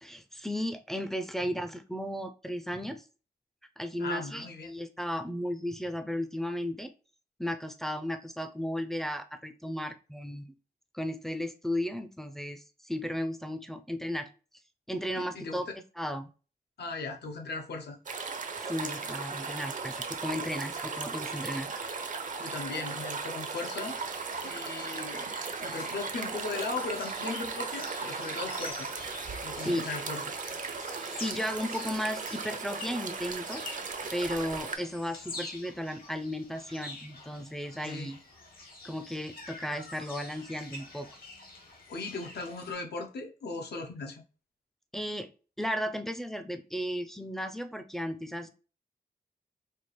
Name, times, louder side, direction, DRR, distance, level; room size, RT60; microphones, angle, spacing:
voice 1, 0.0-3.0 3.8-6.9 7.4-10.5 10.9-14.3 14.9-15.7 16.0-16.3 18.6-21.7 29.5-29.9 31.2-33.7 34.1-38.2 38.8-41.1 44.9-45.3 45.6-48.5, equal, ahead, 0.4 m, -35 dB
voice 2, 4.0-4.7 15.2-15.7 16.8-18.0 22.4-24.0 24.4-25.3 25.6-28.9 29.4-30.2 37.8-38.1 41.9-44.2, left 3 dB, 80° left, 0.7 m, -38 dB
sound 1, 18.1-34.8, right 4 dB, 50° right, 0.5 m, -37 dB
sound 2, 23.7-42.7, left 3 dB, 60° left, 1.2 m, -47 dB
4.4 x 2.4 x 3.1 m
wide cardioid pair, 135°, 17 cm